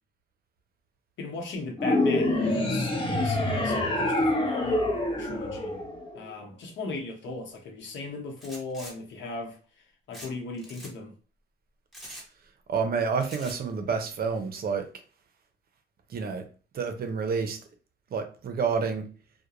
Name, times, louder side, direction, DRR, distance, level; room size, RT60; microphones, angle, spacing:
voice 1, 1.2-5.8 6.1-9.6 10.1-11.1, left 3 dB, 70° left, 0.8 m, -37 dB
sound 1, 1.8-6.3, left 2 dB, 25° left, 1.0 m, -26 dB
sound 2, 8.4-8.9 10.1-10.3 10.6-10.9 11.9-12.3 13.2-13.6, equal, ahead, 1.1 m, -43 dB
voice 2, 12.7-14.8 16.1-16.4 16.7-17.6 18.1-19.1, right 5 dB, 50° right, 0.6 m, -29 dB
2.3 x 2.1 x 2.9 m
cardioid pair, 90°, 20 cm